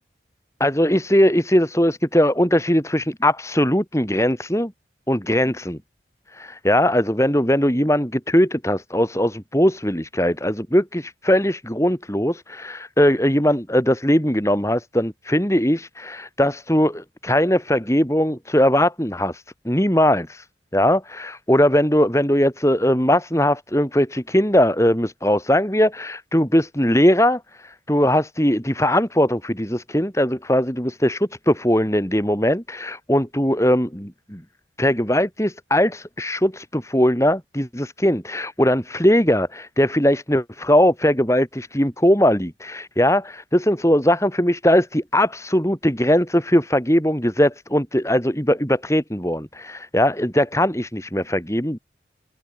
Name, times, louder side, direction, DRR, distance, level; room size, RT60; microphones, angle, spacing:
voice 1, 0.6-4.7 5.1-5.8 6.3-20.5 20.7-34.4 34.8-51.8, equal, 15° left, 6.1 m, -20 dB
open air
head